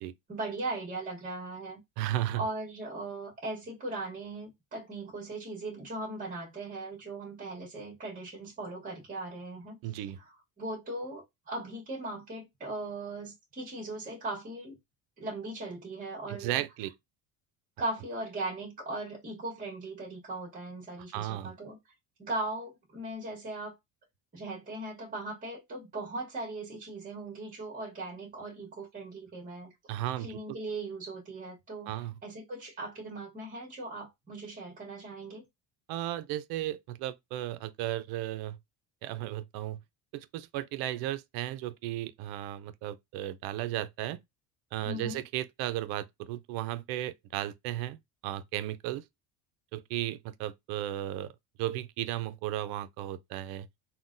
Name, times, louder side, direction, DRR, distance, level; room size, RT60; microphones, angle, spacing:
voice 1, 0.3-1.8 2.3-9.8 10.2-14.7 15.2-16.6 17.8-21.8 22.2-23.7 24.3-29.7 30.2-35.4 44.8-45.2, right 2 dB, 20° right, 1.2 m, -39 dB
voice 2, 2.0-2.4 9.8-10.2 16.3-16.9 21.1-21.5 29.9-30.4 31.9-32.1 35.9-38.6 39.0-39.8 40.1-44.2 44.7-48.0 48.2-49.0 49.7-51.3 51.6-53.7, right 14 dB, 70° right, 0.5 m, -35 dB
3.7 x 2.2 x 2.5 m
cardioid pair, 145°, 40 cm